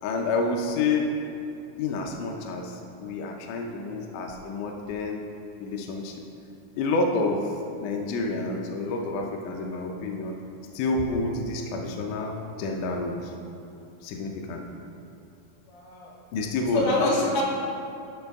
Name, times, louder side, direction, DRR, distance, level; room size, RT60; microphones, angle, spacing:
voice 1, 0.0-1.1 1.8-5.2 5.6-6.2 6.8-7.5 7.8-10.4 10.7-13.3 14.0-14.6 16.3-17.4, left 3 dB, 85° left, 1 dB, 1.8 m, -29 dB
voice 2, 15.7-16.1 16.7-17.4, left 2 dB, 65° left, -5 dB, 3.1 m, -25 dB
12.0 x 4.9 x 3.5 m, 2.7 s
omnidirectional pair, 4.3 m